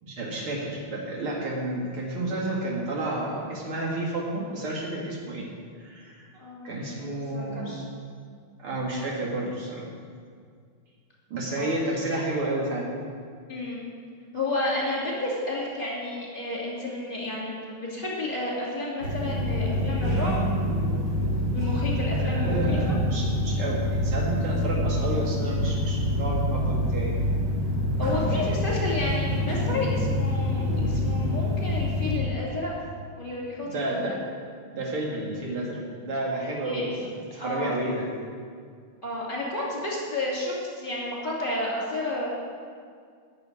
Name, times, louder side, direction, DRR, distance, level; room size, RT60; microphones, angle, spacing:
voice 1, 0.0-5.5 5.8-6.2 6.6-7.7 8.6-9.9 11.3-12.9 22.1-27.2 28.3-28.4 33.6-34.2 34.7-38.1, right 1 dB, 85° right, -3 dB, 3.0 m, -31 dB
voice 2, 6.3-7.8 11.5-11.7 13.5-13.8 14.3-20.4 21.5-22.8 28.0-32.7 33.2-34.2 36.6-37.0 37.4-37.7 39.0-42.3, left 2 dB, 25° left, -5 dB, 2.9 m, -31 dB
sound 1, 19.0-32.2, left 1 dB, 50° right, 2.7 m, -26 dB
11.0 x 6.7 x 8.7 m, 2.1 s
omnidirectional pair, 2.3 m